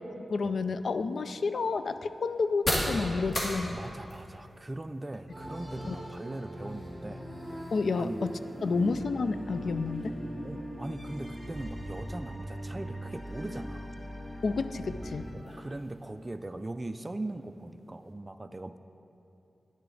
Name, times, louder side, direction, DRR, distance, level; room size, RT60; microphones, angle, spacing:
voice 1, 0.0-3.8 5.9-6.0 7.7-10.1 14.4-15.3, left 4 dB, 70° left, 12 dB, 0.3 m, -30 dB
sound 1, 0.5-18.1, equal, 40° left, 1.8 m, -41 dB
voice 2, 3.7-7.3 8.0-8.3 8.6-8.9 10.4-13.9 15.3-18.8, right 2 dB, 25° right, 9 dB, 0.3 m, -40 dB
sound 2, 5.3-15.3, equal, 15° left, 2.1 m, -40 dB
9.5 x 9.1 x 3.8 m, 2.8 s
wide cardioid pair, 110°, 0 cm